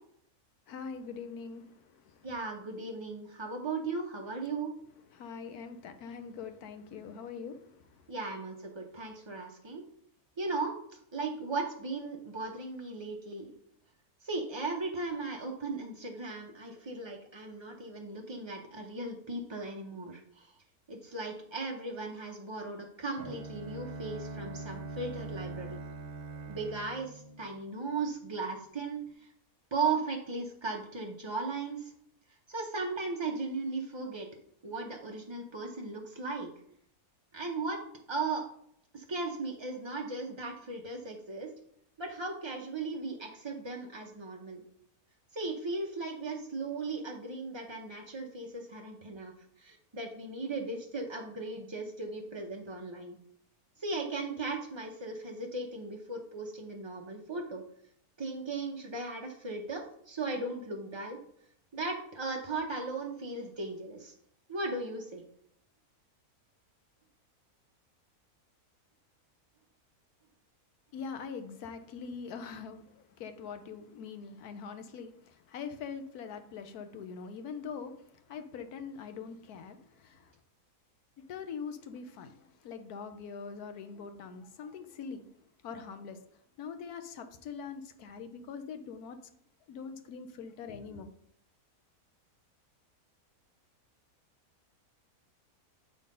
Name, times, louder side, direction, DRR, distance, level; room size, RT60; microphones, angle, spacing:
voice 1, 0.7-2.3 5.1-8.1 70.9-80.4 81.2-85.2 85.6-86.2 86.6-89.2 89.7-91.1, left 6 dB, 80° left, 8 dB, 1.3 m, -43 dB
voice 2, 2.2-4.7 8.1-9.8 10.4-13.5 14.2-20.5 20.9-25.8 26.5-29.3 29.7-31.9 32.5-34.3 34.6-36.5 37.3-37.8 38.1-38.5 38.9-41.5 42.0-44.6 45.3-49.3 49.6-53.2 53.8-57.6 58.2-61.2 61.7-64.1 64.5-65.2, right 3 dB, 40° right, 0 dB, 0.4 m, -37 dB
Bowed string instrument, 23.2-28.1, right 3 dB, 90° right, 1.5 m, -42 dB
7.7 x 3.9 x 5.3 m, 0.68 s
omnidirectional pair, 1.6 m